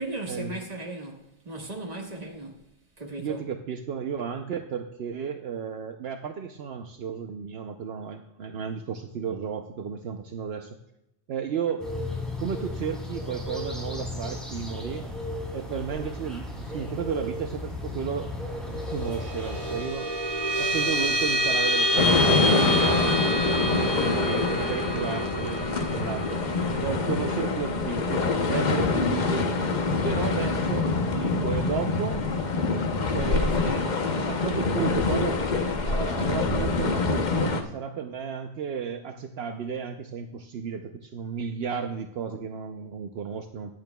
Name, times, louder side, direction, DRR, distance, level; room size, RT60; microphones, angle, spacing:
voice 1, 0.0-2.7 3.0-3.4 33.3-33.8, right 2 dB, 40° right, 1.6 m, -37 dB
voice 2, 3.2-10.8 11.3-11.8 12.4-15.0 15.5-18.3 18.7-20.1 20.6-29.5 30.0-32.2 33.1-33.9 34.3-35.4 35.8-43.7, right 7 dB, 75° right, 0.9 m, -33 dB
sound 1, 11.8-19.8, left 2 dB, ahead, 3.3 m, -35 dB
sound 2, 18.7-29.5, equal, 15° left, 3.6 m, -28 dB
sound 3, 22.0-37.6, left 3 dB, 50° left, 0.9 m, -25 dB
15.5 x 10.5 x 2.3 m
omnidirectional pair, 1.1 m